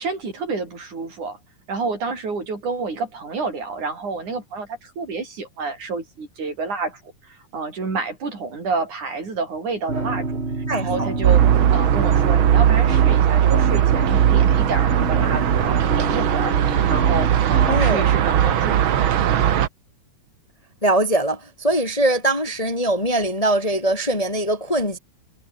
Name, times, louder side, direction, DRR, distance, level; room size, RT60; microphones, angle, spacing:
voice 1, 0.0-1.4 1.7-19.5, right 4 dB, 85° right, 7.9 m, -29 dB
sound 1, 9.9-17.9, right 3 dB, 20° right, 2.8 m, -27 dB
voice 2, 10.7-11.1 17.7-18.0 20.8-25.0, right 1 dB, 15° left, 1.7 m, -22 dB
sound 2, 11.2-19.7, right 10 dB, 55° right, 1.6 m, -18 dB
omnidirectional pair, 3.4 m